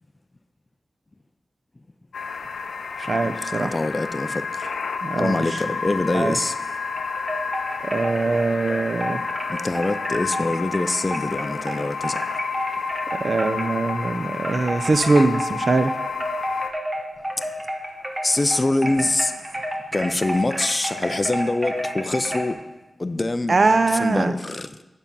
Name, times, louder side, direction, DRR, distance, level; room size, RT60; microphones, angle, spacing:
sound 1, 2.1-16.7, left 5 dB, 90° left, 0.5 m, -30 dB
voice 1, 3.0-3.7 5.0-5.6 6.1-6.4 7.8-9.2 13.2-15.9 23.5-24.3, right 3 dB, 50° right, 0.5 m, -22 dB
voice 2, 3.6-4.7 5.2-6.6 9.5-12.2 18.2-19.4 19.9-22.6 23.0-23.6 23.9-24.8, left 2 dB, 30° left, 0.4 m, -24 dB
sound 2, 6.9-14.1 14.4-22.5, equal, 20° right, 0.9 m, -31 dB
7.3 x 5.6 x 5.4 m
wide cardioid pair, 95°, 0 cm